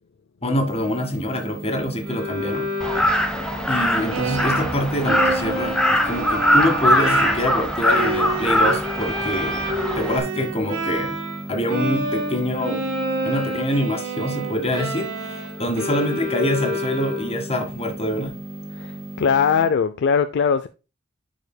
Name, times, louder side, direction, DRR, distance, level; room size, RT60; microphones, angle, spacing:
voice 1, 0.4-2.7 3.2-3.3 3.7-9.7 10.0-11.2 11.5-12.8 13.2-18.4, left 1 dB, 30° left, 1.7 m, -25 dB
sound 1, 0.7-19.7, right 1 dB, 25° right, 2.4 m, -37 dB
Bowed string instrument, 2.1-11.4 11.7-17.5, right 1 dB, 85° right, 1.8 m, -28 dB
Crow, 2.8-10.2, left 1 dB, 5° left, 0.9 m, -22 dB
voice 2, 18.7-20.7, left 6 dB, 55° left, 0.4 m, -20 dB
11.0 x 4.9 x 2.2 m
head